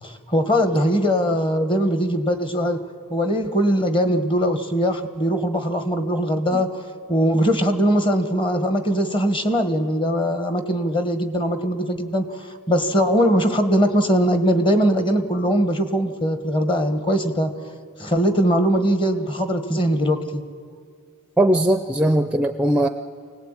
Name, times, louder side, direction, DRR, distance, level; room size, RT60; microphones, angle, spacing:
voice 1, 0.0-2.8 3.1-6.7 7.1-17.5 18.0-20.4, equal, 25° left, 8 dB, 1.5 m, -21 dB
voice 2, 21.4-22.9, right 1 dB, 5° right, 8 dB, 0.6 m, -19 dB
25.0 x 18.5 x 9.0 m, 2.1 s
head